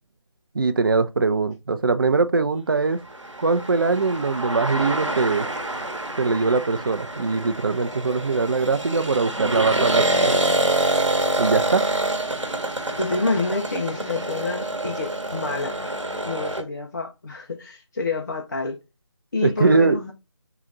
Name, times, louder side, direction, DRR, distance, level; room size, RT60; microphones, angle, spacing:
voice 1, 0.5-3.0 3.4-5.5 6.2-10.5 11.4-11.8 19.4-20.0, right 4 dB, 45° right, 0.5 m, -22 dB
sound 1, 3.1-16.6, right 1 dB, 90° right, 1.0 m, -26 dB
voice 2, 13.0-18.8 19.3-20.1, left 3 dB, 40° left, 0.6 m, -28 dB
3.8 x 2.4 x 4.1 m
figure-of-eight pair, 155°, 15 cm